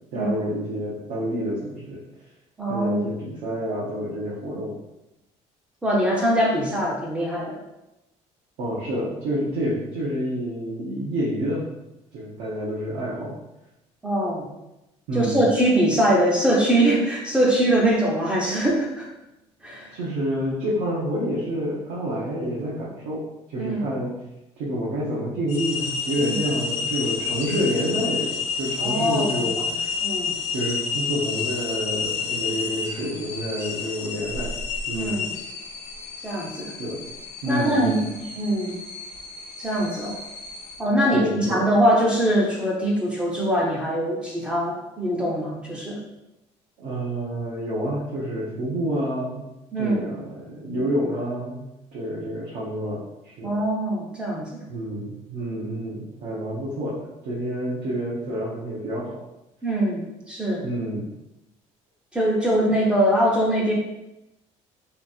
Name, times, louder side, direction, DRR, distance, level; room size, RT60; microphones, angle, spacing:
voice 1, 0.1-2.0 2.7-4.7 8.6-11.7 12.1-13.4 15.1-15.4 19.9-23.2 23.5-24.1 24.6-29.9 30.5-34.5 34.9-35.2 36.8-37.0 37.4-38.0 41.1-41.6 46.8-49.5 49.7-53.5 54.7-57.0 57.2-59.1 60.6-61.1, equal, 70° right, -8 dB, 1.1 m, -28 dB
voice 2, 2.6-3.1 5.8-7.6 14.0-14.5 15.1-19.1 19.6-19.9 23.6-23.9 26.2-26.4 28.8-29.5 30.0-30.4 34.9-35.3 36.2-36.8 37.4-38.7 39.6-40.2 40.8-46.0 49.7-50.0 53.4-54.6 59.6-60.0 60.3-60.6 62.1-63.7, right 1 dB, 10° right, -3 dB, 0.5 m, -22 dB
sound 1, 25.5-40.8, left 5 dB, 60° left, 0.6 m, -30 dB
3.3 x 2.5 x 4.2 m, 0.92 s
cardioid pair, 175°, 13 cm